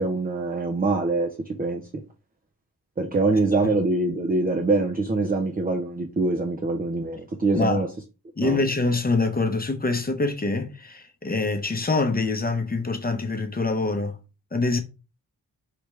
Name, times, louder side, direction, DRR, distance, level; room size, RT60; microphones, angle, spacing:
voice 1, 0.0-2.0 3.0-7.9 8.4-8.6, right 3 dB, 25° right, 0.6 m, -24 dB
voice 2, 3.3-3.7 7.6-7.8 8.4-14.2 14.5-14.8, left 3 dB, 25° left, 0.8 m, -25 dB
4.8 x 3.3 x 3.1 m
wide cardioid pair, 110°, 36 cm